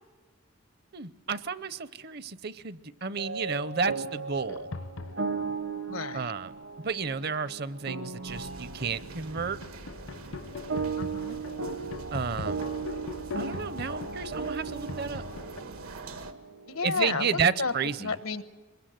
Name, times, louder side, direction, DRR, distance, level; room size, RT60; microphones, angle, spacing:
voice 1, 0.9-4.7 6.1-6.5 6.8-9.6 12.1-12.6 13.4-15.2 16.8-18.2, right 5 dB, 50° right, 15 dB, 0.7 m, -31 dB
sound 1, 3.2-17.4, right 4 dB, 70° right, 1.0 m, -37 dB
sound 2, 4.3-5.6 6.5-7.6 8.1-15.6, left 3 dB, 65° left, 0.7 m, -42 dB
voice 2, 5.9-6.3 11.0-11.4 16.7-17.3 17.6-17.7 18.0-18.4, left 4 dB, 85° left, 12 dB, 1.1 m, -31 dB
sound 3, 8.3-16.3, right 2 dB, 90° right, 1.6 m, -45 dB
23.5 x 21.5 x 7.8 m, 1.4 s
head